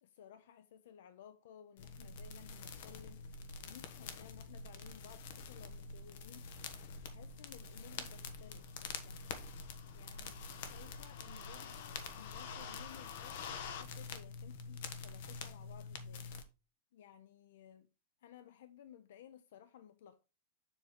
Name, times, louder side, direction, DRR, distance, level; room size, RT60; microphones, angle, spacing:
voice 1, 0.0-3.2 3.6-6.7 7.0-9.3 9.9-16.3 16.9-17.9 18.2-20.2, left 9 dB, 75° left, 0.5 m, -58 dB
sound 1, 1.8-16.4, left 5 dB, 60° left, 1.0 m, -46 dB
7.2 x 3.1 x 5.0 m
supercardioid pair, 170°, 0 cm